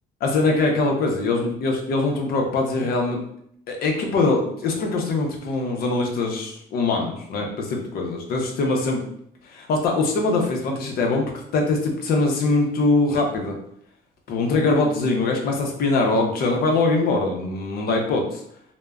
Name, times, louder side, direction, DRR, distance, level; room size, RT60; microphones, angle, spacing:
voice 1, 0.2-3.2 3.7-9.0 9.4-13.6 14.3-18.4, left 3 dB, 65° left, 2 dB, 0.7 m, -22 dB
2.1 x 2.1 x 3.5 m, 0.70 s
cardioid pair, 110°, 17 cm